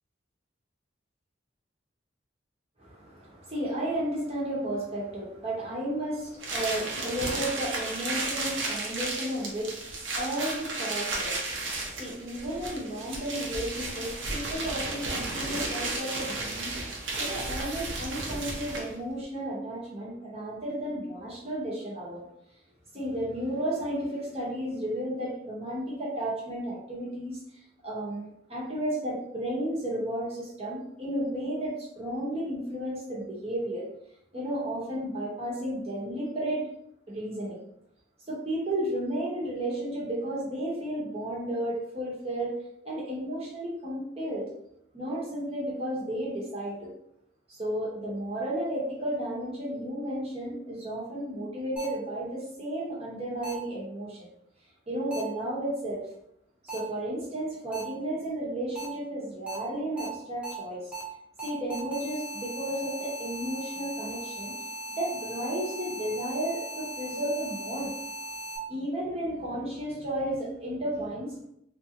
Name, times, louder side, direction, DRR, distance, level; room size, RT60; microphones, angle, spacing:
voice 1, 2.8-16.8 17.2-22.3 22.9-33.8 34.3-36.6 37.1-37.6 38.3-42.5 42.8-44.4 44.9-46.9 47.5-54.3 54.9-56.0 56.6-60.9 61.4-64.5 65.0-67.9 68.7-71.3, right 1 dB, 35° right, -5 dB, 1.1 m, -33 dB
sound 1, 6.4-19.0, right 2 dB, 80° right, 0.9 m, -33 dB
sound 2, 51.8-51.9 53.4-53.5 55.1-55.2 56.7-56.8 57.7-57.8 58.8-58.9 59.5-59.6 60.0-60.1 60.4-60.5 60.9-61.0 61.4-68.6, right 1 dB, 5° right, 1.1 m, -38 dB
3.6 x 2.5 x 2.9 m, 0.76 s
head